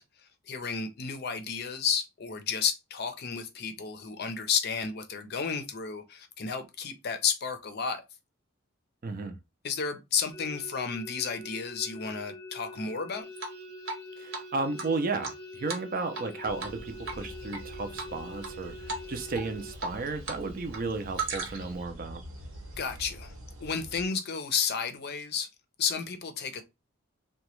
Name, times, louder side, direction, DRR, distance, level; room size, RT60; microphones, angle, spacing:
voice 1, 0.5-8.0 9.6-13.3 22.8-23.3 23.6-25.5 25.8-26.6, left 6 dB, 50° left, 0.5 m, -32 dB
voice 2, 9.0-9.4 14.2-22.2, right 3 dB, 40° right, 0.4 m, -34 dB
sound 1, 10.3-19.7, left 1 dB, 15° left, 0.7 m, -45 dB
Drip, 13.4-14.0 14.3-14.4 14.8-16.3 16.6-16.8 17.1-17.6 18.0-18.5 18.9-19.1 19.3-20.4 20.7-21.8, right 4 dB, 60° right, 0.8 m, -36 dB
sound 2, 16.4-24.1, equal, 90° right, 1.1 m, -46 dB
2.9 x 2.2 x 3.0 m
head